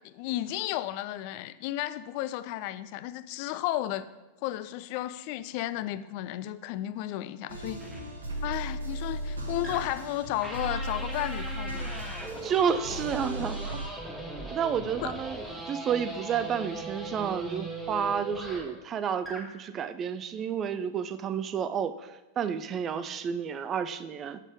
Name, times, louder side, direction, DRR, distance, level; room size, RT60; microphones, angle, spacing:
voice 1, 0.0-4.1 4.4-7.8 8.4-12.2 15.0-15.1, left 14 dB, 45° left, 14 dB, 0.3 m, -33 dB
sound 1, 7.5-13.9, right 1 dB, 70° right, 1.0 m, -36 dB
sound 2, 7.8-8.0 9.6-10.0 10.4-18.8 19.2-19.5, right 1 dB, 5° right, 1.3 m, -39 dB
voice 2, 12.4-13.6 14.5-24.4, right 7 dB, 30° right, 13 dB, 0.4 m, -31 dB
7.4 x 4.1 x 5.0 m, 1.1 s
figure-of-eight pair, 90°, 0 cm